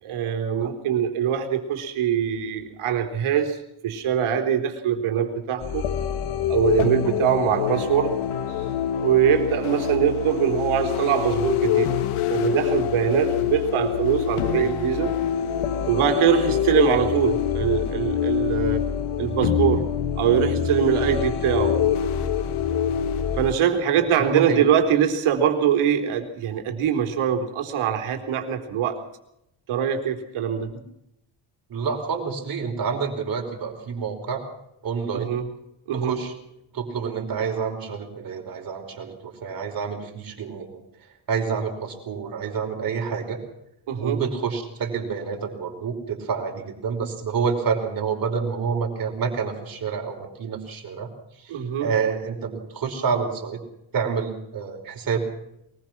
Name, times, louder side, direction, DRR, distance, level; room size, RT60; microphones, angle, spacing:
voice 1, 0.0-5.8 6.5-8.2 9.0-11.9 12.3-15.1 15.9-18.9 19.2-19.9 20.2-21.8 23.4-29.0 29.7-30.7 35.1-35.4 35.9-36.1 43.9-44.2 51.5-51.9, right 8 dB, 80° right, 4 dB, 4.0 m, -23 dB
sound 1, 5.6-23.5, left 9 dB, 85° left, 1.9 m, -25 dB
voice 2, 23.9-24.6 31.7-34.4 34.8-35.3 35.9-36.3 36.7-40.8 41.3-43.4 44.0-51.1 51.4-53.6 53.9-55.2, right 6 dB, 45° right, 2 dB, 5.0 m, -28 dB
23.0 x 20.5 x 6.1 m, 0.80 s
cardioid pair, 165°, 49 cm